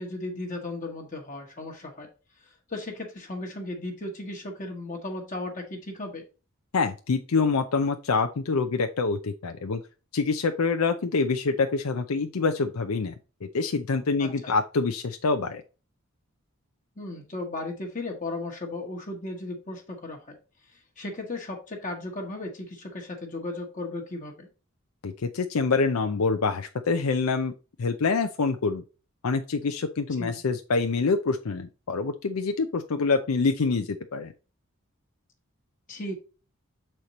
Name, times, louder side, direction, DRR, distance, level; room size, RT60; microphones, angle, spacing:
voice 1, 0.0-2.1 2.4-6.2 14.2-14.5 17.0-20.4 20.7-24.5 30.1-30.4 35.9-36.1, left 2 dB, 35° left, 1 dB, 1.2 m, -36 dB
voice 2, 6.7-9.8 10.1-13.1 13.4-15.6 25.0-27.5 27.8-28.8 29.2-34.3, left 4 dB, 85° left, 7 dB, 0.6 m, -26 dB
6.6 x 4.5 x 4.0 m, 0.33 s
head